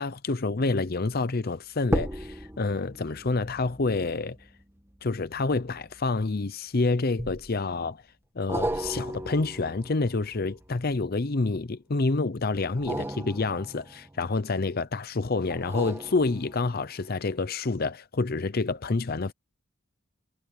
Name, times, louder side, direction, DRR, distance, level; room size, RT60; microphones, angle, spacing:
voice 1, 0.0-4.4 5.0-8.0 8.4-19.3, left 3 dB, 50° left, 0.7 m, -28 dB
sound 1, 0.6-1.0 1.8-6.5 7.2-7.8 8.5-11.5 12.7-14.8 15.5-16.9 17.4-17.5, right 1 dB, 10° right, 2.0 m, -36 dB
head